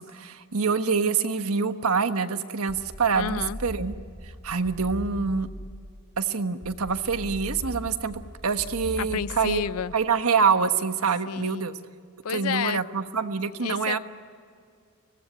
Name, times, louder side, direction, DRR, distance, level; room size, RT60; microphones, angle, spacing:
voice 1, 0.0-3.9 4.4-5.5 6.2-9.6 9.9-11.8 12.3-14.0, right 5 dB, 75° right, 9 dB, 1.3 m, -26 dB
sound 1, 2.7-5.9 6.6-9.9, equal, 40° left, 3.2 m, -39 dB
voice 2, 3.1-3.6 9.0-9.9 11.3-11.6 12.2-12.8 13.6-14.0, left 7 dB, 75° left, 18 dB, 0.5 m, -30 dB
25.0 x 18.5 x 9.3 m, 2.2 s
head